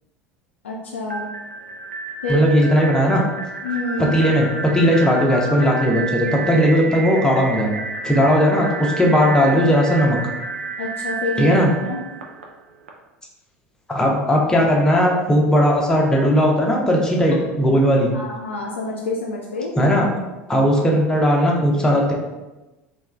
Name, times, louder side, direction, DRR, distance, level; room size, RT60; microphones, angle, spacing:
voice 1, 0.6-1.3 2.2-2.4 3.6-4.1 10.8-11.5 11.8-12.0 18.1-19.7, left 3 dB, 75° left, -2 dB, 0.4 m, -27 dB
sound 1, 1.1-12.9, right 3 dB, 75° right, 0.4 m, -30 dB
voice 2, 2.3-3.2 4.0-7.7 8.0-10.2 11.4-11.7 13.9-18.1 19.8-20.1 20.5-22.1, equal, 10° left, -2 dB, 0.7 m, -17 dB
3.3 x 2.2 x 3.2 m, 1.1 s
figure-of-eight pair, 70°, 7 cm